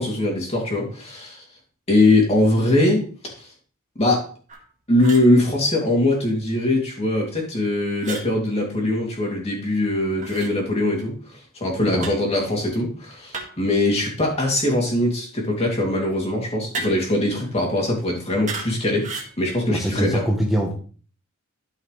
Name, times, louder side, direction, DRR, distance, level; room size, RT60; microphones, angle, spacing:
voice 1, 0.0-1.4 1.9-3.0 3.4-3.5 4.0-4.2 4.9-11.1 11.5-19.1 19.4-20.2, left 1 dB, 30° left, -2 dB, 2.8 m, -21 dB
sound 1, 4.5-4.6 5.0-5.3 8.0-8.3 10.2-10.5 12.0-12.3 13.3-13.7 16.7-17.2 18.5-18.7 19.0-19.3, right 3 dB, 35° right, 1.8 m, -33 dB
voice 2, 19.7-20.7, equal, ahead, -2 dB, 1.0 m, -23 dB
12.5 x 5.6 x 3.3 m, 0.42 s
head